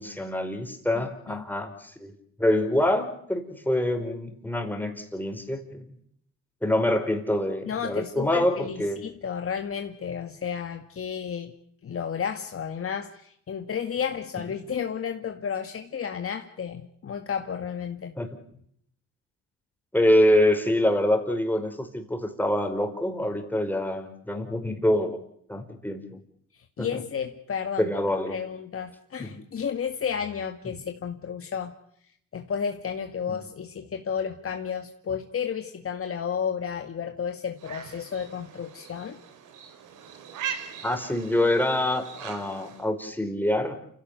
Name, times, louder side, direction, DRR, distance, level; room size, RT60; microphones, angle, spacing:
voice 1, 0.0-2.1 2.4-5.9 6.6-9.0 18.2-18.3 19.9-25.2 25.5-26.2 26.8-27.0 27.8-28.4 29.2-29.3 33.3-33.4 40.8-43.8, left 1 dB, 5° left, 5 dB, 4.9 m, -25 dB
voice 2, 7.7-11.5 11.8-18.1 26.5-27.9 28.3-31.8 32.3-39.2, left 7 dB, 50° left, 5 dB, 2.1 m, -32 dB
sound 1, 37.6-42.9, right 8 dB, 85° right, 3.8 m, -40 dB
29.0 x 16.5 x 6.8 m, 0.68 s
cardioid pair, 90°, 30 cm